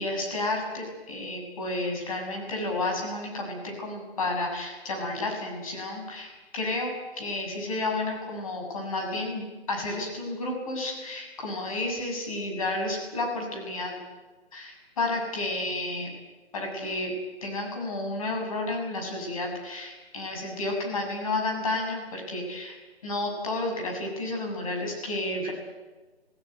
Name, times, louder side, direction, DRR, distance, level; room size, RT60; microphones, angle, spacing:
voice 1, 0.0-14.0 14.5-16.1 16.5-17.1 17.4-22.8 23.0-25.5, left 2 dB, 30° left, 1 dB, 7.4 m, -31 dB
26.0 x 17.5 x 9.2 m, 1.2 s
figure-of-eight pair, 150°, 32 cm